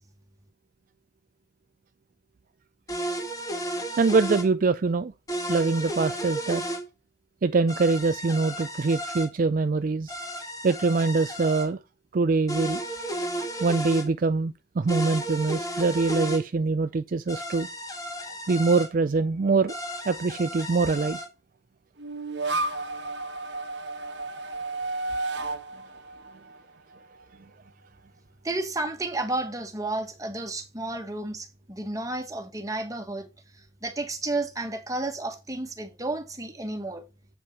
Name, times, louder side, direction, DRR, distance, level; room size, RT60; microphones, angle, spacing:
sound 1, 2.9-4.5 5.3-6.8 7.7-9.3 10.1-11.7 12.5-14.1 14.9-16.4 17.3-18.9 19.7-21.3, right 1 dB, 20° left, 1.8 m, -33 dB
voice 1, 4.0-5.1 5.5-6.6 7.4-10.1 10.6-11.8 12.1-12.8 13.6-17.7 18.5-19.7 20.1-21.2, right 4 dB, 50° right, 0.4 m, -24 dB
sound 2, 22.0-27.2, right 2 dB, 85° right, 1.3 m, -32 dB
voice 2, 28.4-33.3 33.8-37.0, right 2 dB, 20° right, 1.7 m, -32 dB
8.6 x 5.3 x 4.5 m
head